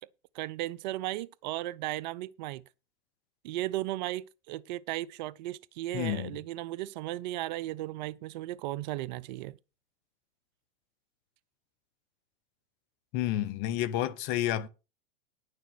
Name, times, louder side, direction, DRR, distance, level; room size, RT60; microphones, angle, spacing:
voice 1, 0.3-2.6 3.4-9.6, right 16 dB, 50° right, 0.5 m, -35 dB
voice 2, 5.9-6.4 13.1-14.7, left 12 dB, 40° left, 1.0 m, -30 dB
10.0 x 6.5 x 6.1 m
hypercardioid pair, 105°, 29 cm